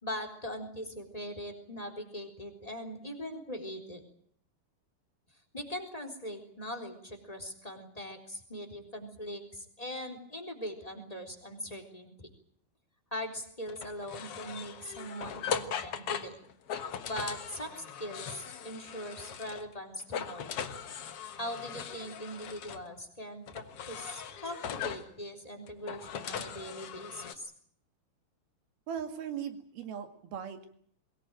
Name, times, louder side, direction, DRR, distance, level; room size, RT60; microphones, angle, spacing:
voice 1, 0.0-4.0 5.5-12.3 13.1-16.4 17.0-20.7 21.4-27.5, equal, 10° left, 7 dB, 3.4 m, -41 dB
sound 1, 13.7-19.7 20.0-22.8 23.5-25.1 25.7-27.3, left 7 dB, 55° left, 1.7 m, -39 dB
voice 2, 28.9-30.7, right 8 dB, 80° right, 7 dB, 4.1 m, -38 dB
22.5 x 19.5 x 9.0 m, 0.63 s
omnidirectional pair, 4.3 m